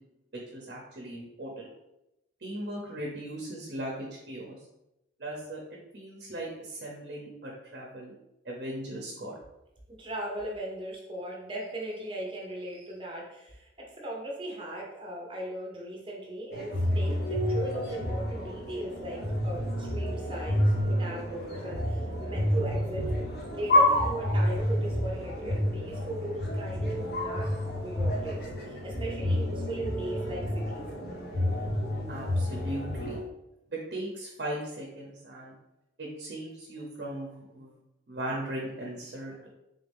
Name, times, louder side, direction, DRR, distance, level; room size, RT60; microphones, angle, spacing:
voice 1, 0.3-1.7 2.4-4.6 5.2-5.6 5.9-8.1 8.5-9.3 32.1-33.2 33.7-35.5 36.0-37.8 38.1-39.5, right 1 dB, 60° right, -2 dB, 0.7 m, -38 dB
voice 2, 10.0-23.1 23.5-27.5 27.8-30.9, right 1 dB, 25° right, -2 dB, 0.7 m, -38 dB
sound 1, 16.5-33.2, left 1 dB, 55° left, 1.0 m, -29 dB
3.7 x 2.6 x 3.4 m, 0.89 s
head